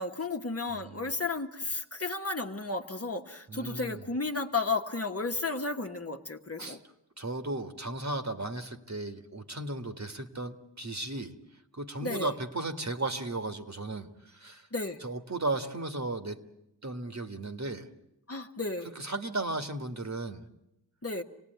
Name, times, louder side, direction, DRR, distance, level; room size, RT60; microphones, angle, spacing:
voice 1, 0.0-6.8 12.0-12.3 14.7-15.0 18.3-18.9 21.0-21.2, left 3 dB, 35° left, 4 dB, 1.4 m, -33 dB
voice 2, 0.7-1.1 3.5-4.0 6.6-6.8 7.2-11.3 11.7-14.7 15.0-16.4 16.8-17.9 19.0-20.5, right 2 dB, 40° right, 7 dB, 1.8 m, -35 dB
26.5 x 18.0 x 9.3 m, 0.86 s
cardioid pair, 50°, 42 cm